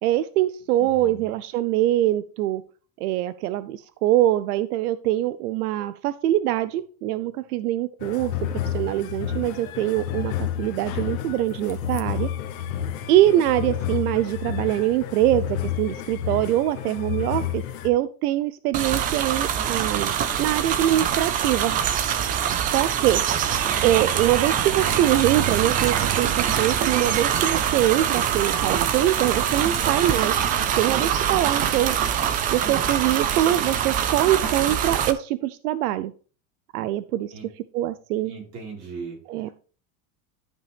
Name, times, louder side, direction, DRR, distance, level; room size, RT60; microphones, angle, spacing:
voice 1, 0.0-2.6 3.0-8.3 8.6-10.3 10.6-12.3 13.1-20.1 20.4-21.8 22.6-23.5 23.8-32.0 32.5-36.1 36.7-37.3 37.7-38.3 39.3-39.5, right 13 dB, 90° right, 14 dB, 0.7 m, -23 dB
voice 2, 0.7-1.3 37.3-37.5 38.2-39.2, right 5 dB, 35° right, -1 dB, 4.3 m, -38 dB
sound 1, 8.0-17.9, left 9 dB, 65° left, 1.5 m, -30 dB
sound 2, 18.7-35.1, right 9 dB, 20° right, 0.4 m, -24 dB
12.0 x 5.3 x 3.4 m, 0.39 s
supercardioid pair, 155°, 44 cm